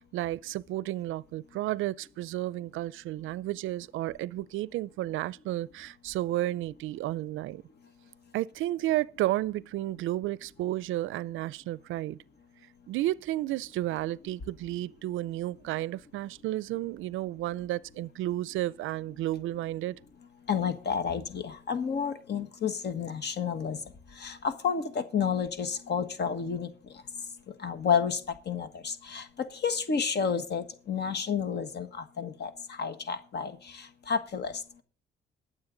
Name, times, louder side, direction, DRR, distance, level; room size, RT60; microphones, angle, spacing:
voice 1, 0.0-7.6 8.3-12.2 12.9-20.0, right 15 dB, 80° right, 0.4 m, -32 dB
voice 2, 20.5-23.8 24.2-26.7 27.6-28.2 28.5-29.2 29.6-31.9 32.2-32.5 32.8-33.5 34.1-34.5, left 6 dB, 55° left, 1.4 m, -30 dB
21.0 x 7.6 x 3.9 m
cardioid pair, 90°, 20 cm